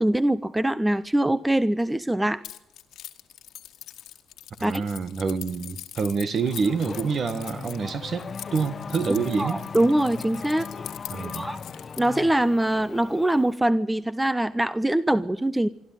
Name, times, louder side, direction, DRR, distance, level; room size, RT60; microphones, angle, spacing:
voice 1, 0.0-2.4 4.6-4.8 9.4-10.7 11.3-11.6 12.0-15.7, right 1 dB, 10° right, 16 dB, 0.7 m, -23 dB
Keys jangling, 2.4-12.2, left 12 dB, 80° left, 1.5 m, -42 dB
voice 2, 4.6-9.6 11.1-11.5, right 5 dB, 50° right, 12 dB, 1.7 m, -27 dB
Race car auto racing / Accelerating revving vroom, 6.3-13.6, left 5 dB, 40° left, 0.8 m, -38 dB
26.0 x 12.5 x 9.2 m, 0.91 s
cardioid pair, 90°, 0 cm